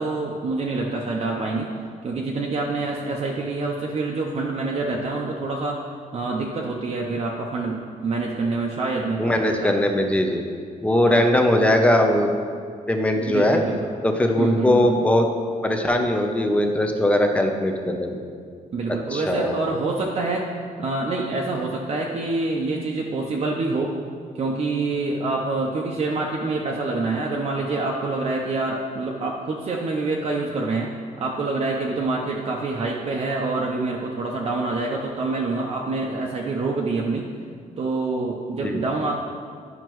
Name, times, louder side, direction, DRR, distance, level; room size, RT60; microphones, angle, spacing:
voice 1, 0.0-1.7 2.0-5.8 6.1-9.7 11.1-11.2 13.1-13.9 14.4-14.9 18.7-20.5 20.8-23.9 24.3-30.9 31.2-37.3 37.8-39.2, right 3 dB, 45° right, -1 dB, 0.6 m, -26 dB
voice 2, 9.2-10.4 10.8-12.3 12.9-13.6 14.0-15.3 15.6-18.2 18.9-19.5 38.6-38.8, left 1 dB, 10° left, 4 dB, 0.6 m, -20 dB
11.0 x 5.7 x 3.1 m, 2.1 s
wide cardioid pair, 155°, 14 cm